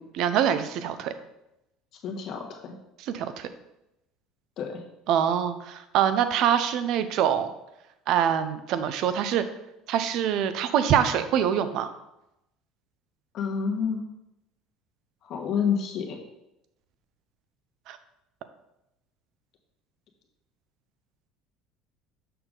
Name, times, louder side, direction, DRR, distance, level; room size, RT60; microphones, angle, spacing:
voice 1, 0.1-1.1 3.0-3.5 5.1-7.5 8.1-9.4 9.9-11.9 17.9-18.0, right 9 dB, 60° right, 11 dB, 0.6 m, -24 dB
voice 2, 2.0-2.7 4.6-4.8 13.3-14.0 15.2-16.2, left 6 dB, 55° left, 1 dB, 1.5 m, -28 dB
6.8 x 6.0 x 3.9 m, 0.88 s
cardioid pair, 120°, 0 cm